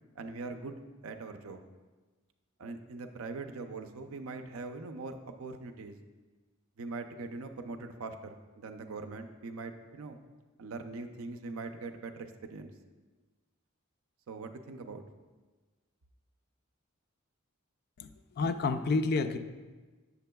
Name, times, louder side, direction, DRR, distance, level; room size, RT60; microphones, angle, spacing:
voice 1, 0.2-1.6 2.6-6.0 6.8-10.2 10.6-12.7 14.3-15.0, right 3 dB, 70° right, 7 dB, 0.5 m, -42 dB
voice 2, 18.0-19.4, left 3 dB, 45° left, 9 dB, 0.3 m, -30 dB
7.5 x 6.9 x 2.2 m, 1.3 s
head